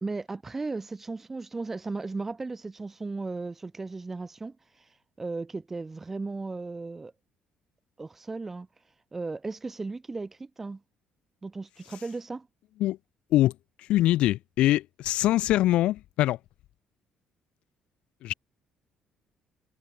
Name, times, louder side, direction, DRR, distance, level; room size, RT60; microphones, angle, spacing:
voice 1, 0.0-7.1 8.0-8.7 9.1-10.8 11.4-12.5, right 3 dB, 15° right, 4.0 m, -36 dB
voice 2, 13.9-16.4 18.2-18.3, left 15 dB, 65° left, 0.9 m, -23 dB
cardioid pair, 175°, 2 cm